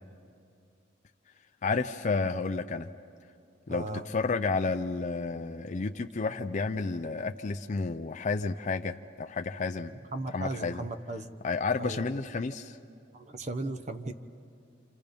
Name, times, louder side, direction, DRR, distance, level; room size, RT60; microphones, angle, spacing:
voice 1, 1.6-2.9 3.7-9.9 10.3-10.8 11.4-12.8, left 4 dB, 40° left, 6 dB, 0.5 m, -31 dB
voice 2, 3.7-4.0 10.1-11.3 11.8-12.0 13.1-14.1, right 2 dB, 40° right, 9 dB, 0.9 m, -36 dB
29.0 x 27.0 x 5.2 m, 2.4 s
head